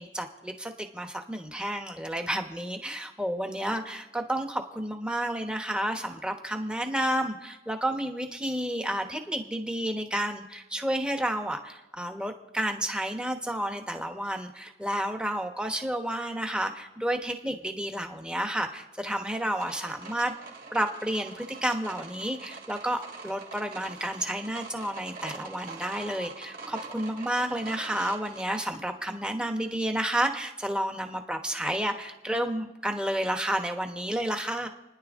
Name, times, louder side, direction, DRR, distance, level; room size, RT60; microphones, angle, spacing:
voice 1, 0.0-20.3 20.7-34.7, right 1 dB, 5° right, 4 dB, 1.2 m, -31 dB
sound 1, 19.6-28.7, right 4 dB, 55° right, 3.1 m, -44 dB
29.5 x 10.5 x 3.7 m, 1.0 s
head